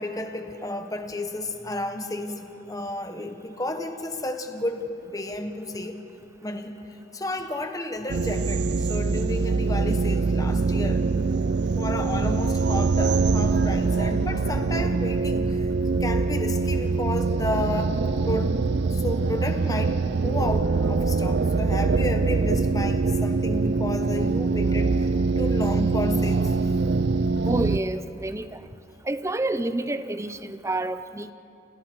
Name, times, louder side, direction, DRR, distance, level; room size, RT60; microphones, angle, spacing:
voice 1, 0.0-6.0 6.4-6.7 7.1-11.0 11.8-15.7 16.0-17.9 18.3-25.1 25.4-26.7, left 1 dB, 20° left, 5 dB, 1.4 m, -32 dB
sound 1, 8.1-27.8, right 4 dB, 70° right, 0.6 m, -23 dB
voice 2, 27.4-28.6 29.0-31.3, right 2 dB, 15° right, 11 dB, 0.7 m, -29 dB
29.0 x 28.5 x 4.7 m, 2.9 s
head